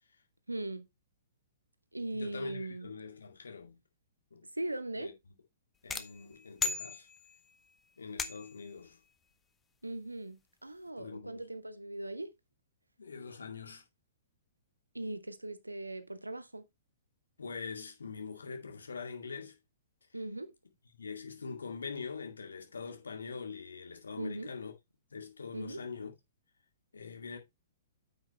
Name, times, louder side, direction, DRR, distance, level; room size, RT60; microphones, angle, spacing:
voice 1, 0.5-0.8 1.9-2.9 4.5-5.1 9.8-12.3 14.9-16.7 20.1-20.5 24.2-24.5 25.5-25.8, right 2 dB, 85° right, 1.0 m, -39 dB
voice 2, 2.2-3.8 4.3-4.5 5.0-5.1 5.8-7.1 8.0-9.0 11.0-11.4 13.0-13.8 17.4-19.6 20.9-24.7 25.1-26.1 26.9-27.4, left 5 dB, 70° left, 2.2 m, -43 dB
sound 1, 5.9-7.5 8.2-8.7, left 5 dB, 15° left, 0.9 m, -37 dB
8.9 x 6.0 x 3.2 m
figure-of-eight pair, 115°, 0 cm